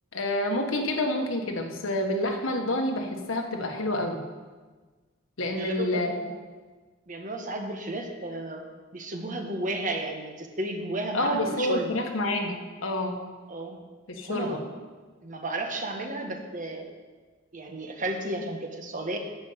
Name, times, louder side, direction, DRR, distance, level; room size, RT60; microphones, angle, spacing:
voice 1, 0.1-4.2 5.4-6.3 11.1-12.6 12.8-13.1 14.1-14.6, left 1 dB, 85° left, 3 dB, 1.5 m, -28 dB
voice 2, 5.5-6.2 7.1-8.6 8.9-12.0 13.5-13.8 14.2-14.6 15.2-16.8 17.5-19.2, right 2 dB, 40° right, 3 dB, 1.3 m, -33 dB
11.5 x 5.4 x 7.9 m, 1.4 s
head